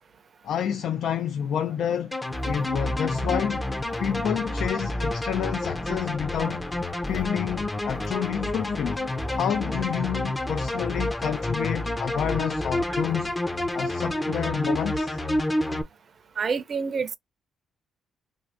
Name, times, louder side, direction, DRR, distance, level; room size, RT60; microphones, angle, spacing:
voice 1, 0.4-2.2 2.4-3.6 4.0-6.6 7.0-9.0 9.3-13.3 13.7-15.2, left 9 dB, 70° left, 0.3 m, -29 dB
sound 1, 2.1-15.8, left 1 dB, 20° left, 0.6 m, -29 dB
voice 2, 16.4-17.2, right 5 dB, 45° right, 0.5 m, -28 dB
2.6 x 2.4 x 3.4 m
cardioid pair, 90°, 0 cm